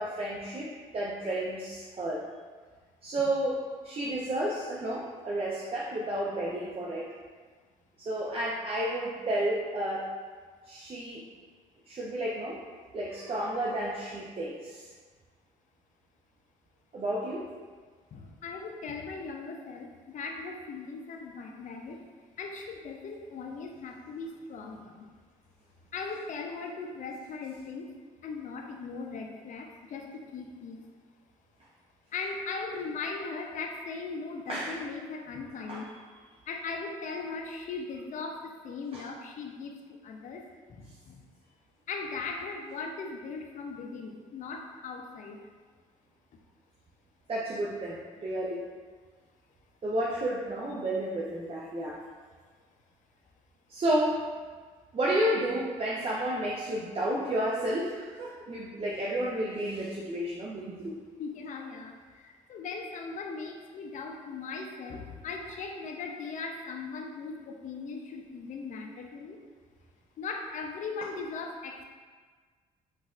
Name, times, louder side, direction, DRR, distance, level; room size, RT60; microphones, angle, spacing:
voice 1, 0.0-2.2 3.0-7.1 8.0-10.1 10.7-11.2 11.8-12.6 12.9-14.9 16.9-17.5 34.5-34.8 35.7-35.9 38.9-39.0 47.3-48.7 49.8-52.0 53.7-54.3 54.9-61.0, right 1 dB, 35° right, -5 dB, 0.6 m, -31 dB
voice 2, 18.1-22.0 22.4-25.0 25.9-27.9 28.2-30.8 32.1-35.9 36.5-41.2 41.9-45.4 61.2-69.4 70.2-71.8, left 4 dB, 50° left, 2 dB, 0.5 m, -39 dB
4.0 x 2.5 x 2.4 m, 1.5 s
hypercardioid pair, 60°, 17 cm